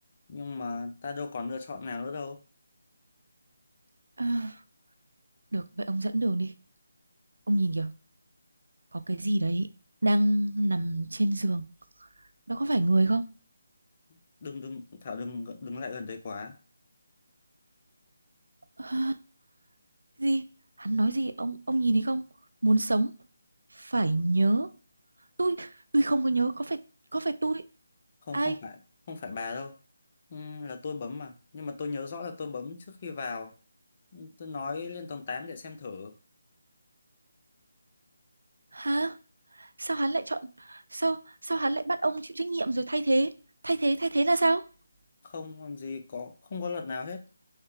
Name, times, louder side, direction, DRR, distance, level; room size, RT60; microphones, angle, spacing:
voice 1, 0.3-2.4 14.1-16.6 28.2-28.8 29.1-29.7 30.3-33.5 34.1-36.2 45.2-47.2, left 4 dB, 40° left, 0.6 m, -37 dB
voice 2, 4.2-4.6 5.5-6.5 7.5-7.9 8.9-9.7 10.0-11.7 12.5-13.2 18.8-19.2 20.2-20.4 20.8-22.2 22.6-23.1 23.8-24.7 25.4-26.8 27.1-27.6 28.3-28.6 38.7-39.2 39.6-43.3 43.6-44.7, right 2 dB, 70° right, 0.4 m, -27 dB
3.2 x 3.2 x 3.1 m
figure-of-eight pair, 155°, 0 cm